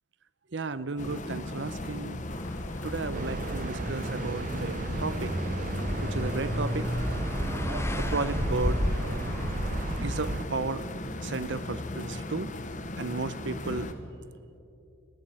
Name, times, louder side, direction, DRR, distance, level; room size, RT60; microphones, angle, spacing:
voice 1, 0.5-2.2 2.8-5.3 6.0-6.9 8.0-8.8 10.0-10.8 11.2-12.5 13.0-13.9, right 3 dB, 60° right, 15 dB, 0.8 m, -33 dB
sound 1, 1.0-13.9, left 1 dB, 35° left, 1.1 m, -37 dB
sound 2, 2.3-10.4, left 1 dB, 10° left, 0.6 m, -33 dB
sound 3, 3.1-10.5, right 3 dB, 40° right, 0.4 m, -36 dB
21.0 x 14.5 x 9.1 m, 2.8 s
head